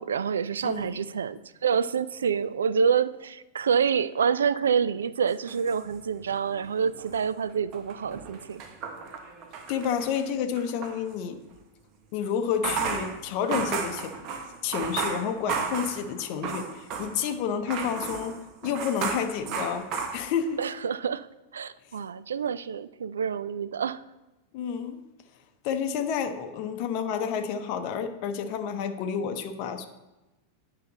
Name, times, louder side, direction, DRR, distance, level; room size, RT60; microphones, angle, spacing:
voice 1, 0.0-8.6 20.6-21.3 21.5-24.0, right 6 dB, 70° right, 16 dB, 0.3 m, -27 dB
voice 2, 0.6-1.0 9.7-11.4 12.1-14.1 14.6-20.6 24.5-25.0 25.6-29.9, left 7 dB, 45° left, 7 dB, 0.7 m, -30 dB
sound 1, 5.3-6.5 6.8-11.0 12.4-17.3 17.7-20.6, right 5 dB, 40° right, 1.0 m, -34 dB
9.1 x 5.7 x 3.9 m, 1.0 s
figure-of-eight pair, 90°, 0 cm